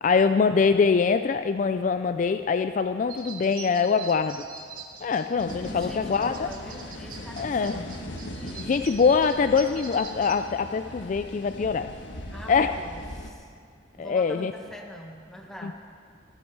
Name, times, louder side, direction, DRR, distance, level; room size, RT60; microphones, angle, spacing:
voice 1, 0.0-4.4 5.0-6.5 7.4-7.8 8.6-11.9 12.5-12.7 14.0-14.5 15.6-15.7, left 5 dB, 40° left, 9 dB, 0.3 m, -23 dB
sound 1, 3.1-10.3, right 5 dB, 50° right, 1.2 m, -44 dB
sound 2, 5.4-13.3, left 1 dB, 75° left, 1.4 m, -39 dB
voice 2, 5.7-8.1 8.4-9.0 12.3-13.5 14.0-15.7, equal, 5° left, 0 dB, 1.3 m, -44 dB
24.5 x 8.6 x 4.6 m, 2.2 s
head